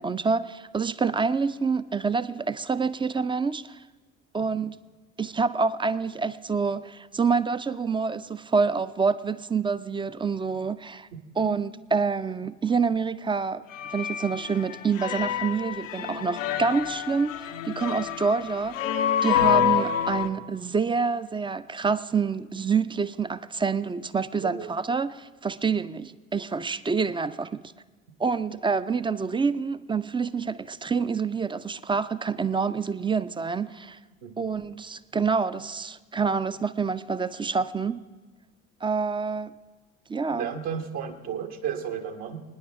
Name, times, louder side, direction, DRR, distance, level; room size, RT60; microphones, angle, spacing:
voice 1, 0.0-3.8 4.3-4.7 5.2-11.1 11.4-13.6 13.9-18.8 19.2-27.6 28.2-34.0 34.4-38.0 38.8-39.5 40.1-40.5, right 5 dB, 15° right, 0.4 m, -27 dB
sound 1, 13.7-20.3, left 9 dB, 80° left, 0.6 m, -27 dB
voice 2, 24.4-24.7 34.2-34.5 40.3-42.4, right 8 dB, 65° right, 1.5 m, -33 dB
29.0 x 9.9 x 3.5 m
figure-of-eight pair, 55°, 38 cm